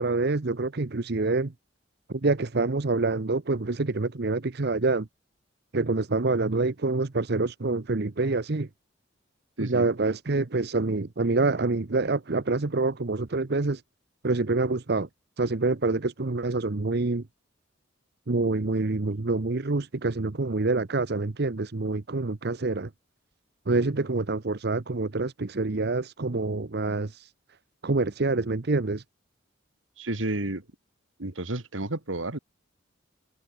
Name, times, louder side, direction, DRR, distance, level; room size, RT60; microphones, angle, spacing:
voice 1, 0.0-1.5 2.1-5.1 5.7-8.7 9.6-13.8 14.2-15.1 15.4-17.2 18.3-22.9 23.7-27.3 27.8-29.0, right 3 dB, 55° right, 0.9 m, -26 dB
voice 2, 30.0-30.6 31.2-32.4, right 2 dB, 85° right, 2.3 m, -31 dB
head